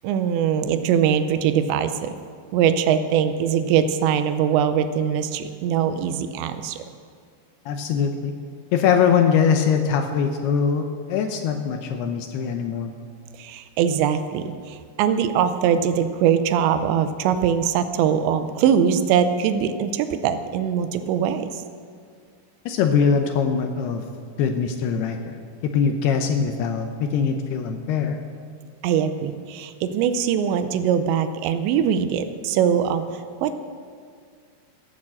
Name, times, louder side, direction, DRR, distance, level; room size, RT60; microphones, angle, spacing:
voice 1, 0.0-2.1 2.5-6.8 13.4-21.6 28.8-33.0 33.4-33.6, right 8 dB, 80° right, 10 dB, 2.8 m, -22 dB
voice 2, 7.7-8.3 8.7-12.9 22.7-24.1 24.4-25.4 25.7-28.2, left 6 dB, 80° left, 5 dB, 2.4 m, -22 dB
16.0 x 8.8 x 7.5 m, 2.2 s
omnidirectional pair, 5.4 m